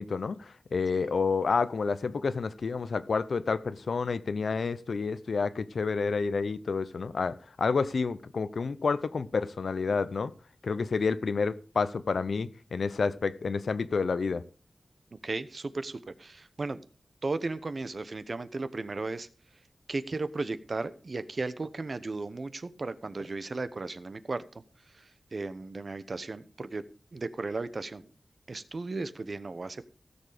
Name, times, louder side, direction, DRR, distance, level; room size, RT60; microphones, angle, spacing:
voice 1, 0.0-10.3 10.6-14.4, left 4 dB, 85° left, 0.8 m, -29 dB
voice 2, 15.2-16.8 17.2-19.3 19.9-24.4 24.9-26.8 27.1-28.1 28.5-29.8, right 3 dB, 50° right, 0.9 m, -35 dB
16.5 x 7.1 x 5.1 m
wide cardioid pair, 100°, 0 cm